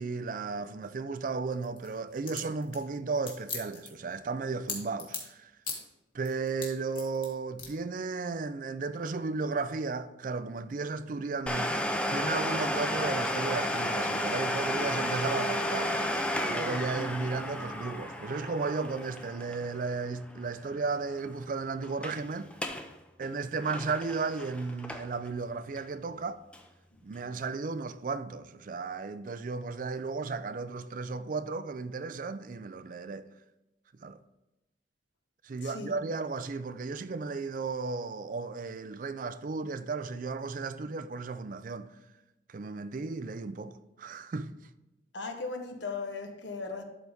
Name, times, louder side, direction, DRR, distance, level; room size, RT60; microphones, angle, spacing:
voice 1, 0.0-5.5 6.1-15.9 16.5-22.5 23.2-26.4 27.0-33.3 34.0-34.2 35.4-41.9 42.5-44.5, right 4 dB, 45° right, 0.4 m, -34 dB
sound 1, 1.5-5.3 5.6-5.9 6.2-7.3 7.6-7.7, left 6 dB, 30° left, 1.8 m, -39 dB
Domestic sounds home sounds, 11.5-20.9 21.1-21.2 21.8-22.2 22.5-22.9 23.2-25.3 25.8-25.9 26.5-26.6, left 1 dB, 5° left, 0.5 m, -32 dB
voice 2, 35.6-36.0 45.1-46.8, left 4 dB, 80° left, 1.0 m, -37 dB
12.0 x 4.0 x 3.5 m
head